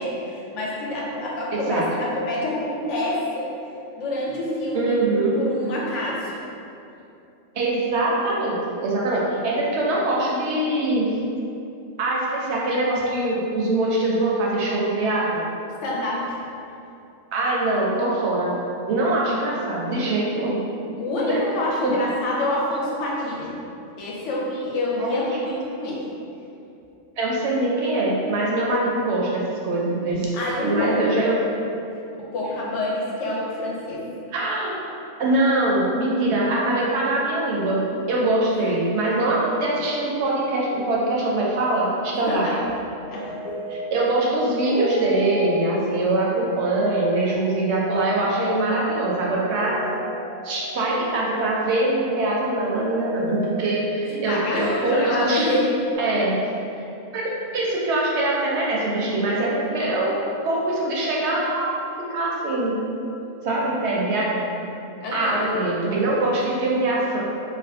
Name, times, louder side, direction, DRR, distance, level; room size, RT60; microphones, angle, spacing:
voice 1, 0.0-3.5 4.0-4.9 5.4-6.3 15.8-16.2 21.0-23.5 24.0-26.1 30.3-31.1 32.2-34.1 42.3-42.6 43.1-43.4 54.1-55.7 65.0-65.6, left 1 dB, 75° left, -4 dB, 0.9 m, -27 dB
voice 2, 1.5-1.9 4.7-5.4 7.5-11.1 12.0-15.4 17.3-18.6 18.9-20.6 21.3-21.4 21.8-22.0 25.0-25.1 27.2-30.3 30.6-31.4 34.3-34.8 35.2-42.5 43.7-49.8 50.4-55.5 56.0-56.4 57.1-60.2 60.4-61.7 62.1-62.8 63.4-64.5 65.1-67.2, right 2 dB, 70° right, -4 dB, 0.8 m, -23 dB
sound 1, 43.0-55.9, equal, 40° left, 0.6 m, -34 dB
2.5 x 2.4 x 3.4 m, 2.7 s
omnidirectional pair, 1.3 m